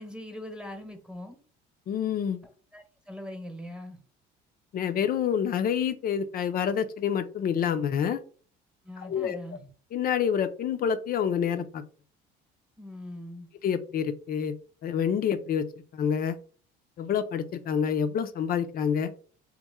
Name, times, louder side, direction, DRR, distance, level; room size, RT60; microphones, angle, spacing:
voice 1, 0.0-1.4 2.7-4.0 8.8-9.7 12.8-13.5, left 1 dB, 5° right, 5 dB, 1.1 m, -41 dB
voice 2, 1.9-2.4 4.7-8.2 9.0-9.4 9.9-11.8 13.6-14.5 14.8-15.7 15.9-16.4 17.0-19.1, left 8 dB, 45° left, 10 dB, 0.5 m, -27 dB
3.5 x 3.1 x 3.6 m, 0.41 s
supercardioid pair, 95°, 20 cm